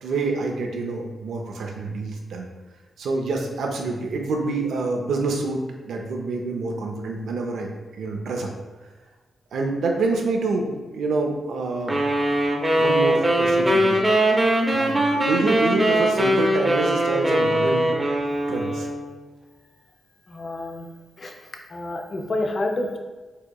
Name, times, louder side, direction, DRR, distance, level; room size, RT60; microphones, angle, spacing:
voice 1, 0.0-2.5 3.0-5.6 5.9-8.5 9.5-12.0 12.8-14.0 14.7-17.8 18.5-18.9, right 3 dB, 85° right, 1 dB, 0.4 m, -27 dB
sound 1, 11.9-19.1, right 1 dB, 20° right, 0.6 m, -21 dB
voice 2, 20.3-20.9 21.2-21.3 21.7-23.0, left 2 dB, 45° left, 2 dB, 0.5 m, -28 dB
4.5 x 2.9 x 2.3 m, 1.3 s
cardioid pair, 85°, 0 cm